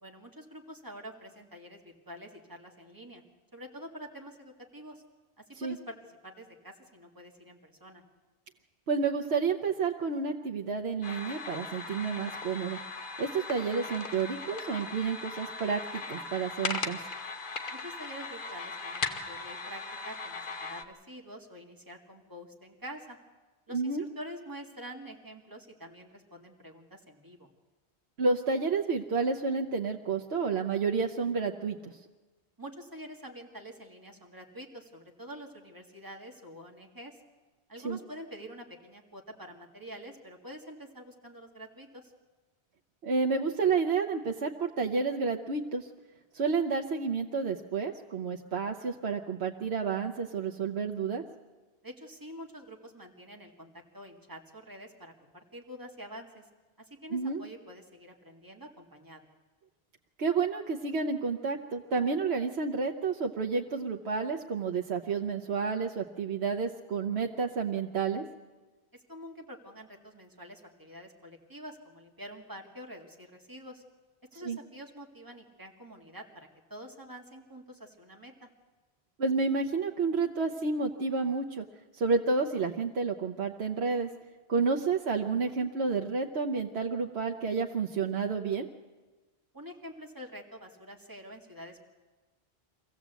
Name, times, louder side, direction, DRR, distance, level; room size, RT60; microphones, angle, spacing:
voice 1, 0.0-3.2 3.5-5.0 5.4-6.0 6.2-8.0 17.7-23.2 23.7-27.5 32.6-37.2 37.7-42.1 51.8-56.5 56.8-59.3 68.9-73.8 74.3-78.5 89.5-91.8, equal, 20° right, 1 dB, 2.1 m, -47 dB
voice 2, 8.9-12.8 13.2-17.0 23.7-24.0 28.2-32.0 37.8-38.0 43.0-45.9 46.3-51.2 57.1-57.4 60.2-68.2 74.4-74.6 79.2-81.6 81.9-84.1 84.5-88.7, right 4 dB, 75° right, 3 dB, 1.1 m, -30 dB
sound 1, 11.0-20.8, left 4 dB, 55° left, 1.2 m, -38 dB
24.0 x 15.5 x 8.2 m, 1.3 s
omnidirectional pair, 1.1 m